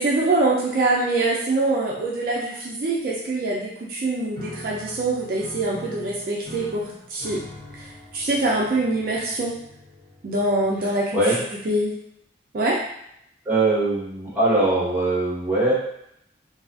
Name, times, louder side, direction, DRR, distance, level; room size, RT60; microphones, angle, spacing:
voice 1, 0.0-7.4 7.8-7.9 8.1-9.5 10.2-11.2 11.7-11.9 12.5-12.8, right 2 dB, 50° right, -4 dB, 0.4 m, -24 dB
Piano, 4.3-11.1, equal, 40° left, 1.4 m, -43 dB
voice 2, 10.8-11.4 13.4-15.7, right 2 dB, 10° right, -8 dB, 0.9 m, -22 dB
2.6 x 2.4 x 2.4 m, 0.75 s
head